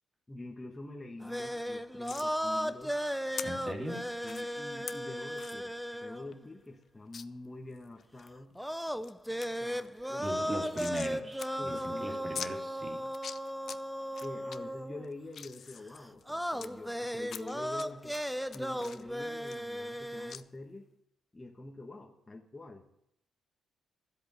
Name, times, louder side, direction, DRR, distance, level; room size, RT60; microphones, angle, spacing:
voice 1, 0.3-3.0 4.2-8.5 9.6-10.6 11.6-12.3 14.2-18.2 18.5-20.9 21.3-22.8, left 2 dB, 15° left, -1 dB, 1.6 m, -46 dB
sound 1, 1.2-6.5 8.6-15.1 16.3-20.4, equal, ahead, 0.6 m, -36 dB
sound 2, 2.0-2.3 3.4-3.5 4.2-4.4 4.9-5.0 5.4-5.6 6.0-6.1 6.3-6.4 7.1-7.2 7.8-8.3 8.7-9.1 9.4-9.5 9.8-11.1 11.4-11.5 11.8-11.9 12.3-12.5 13.0-13.8 14.1-14.6 15.0-16.7 17.3-17.8 18.1-20.0 20.3-20.4, left 7 dB, 55° left, 0.6 m, -43 dB
voice 2, 3.4-4.0 10.2-13.0, equal, 25° right, 3 dB, 3.0 m, -39 dB
13.5 x 8.1 x 8.4 m, 0.75 s
cardioid pair, 90°, 0 cm